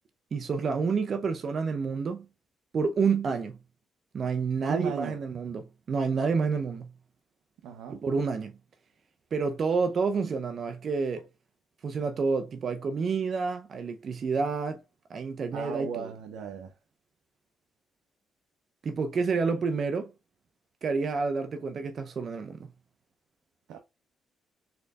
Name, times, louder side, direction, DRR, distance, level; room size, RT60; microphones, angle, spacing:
voice 1, 0.3-2.3 2.7-3.6 4.1-6.9 7.9-8.5 9.3-11.3 11.8-14.8 15.1-16.1 18.8-20.1 20.8-22.7, right 5 dB, 50° right, 0.5 m, -29 dB
voice 2, 4.7-5.2 7.6-8.0 15.5-16.7 23.7-23.8, right 7 dB, 85° right, 0.7 m, -36 dB
4.3 x 3.8 x 2.3 m
cardioid pair, 90°, 0 cm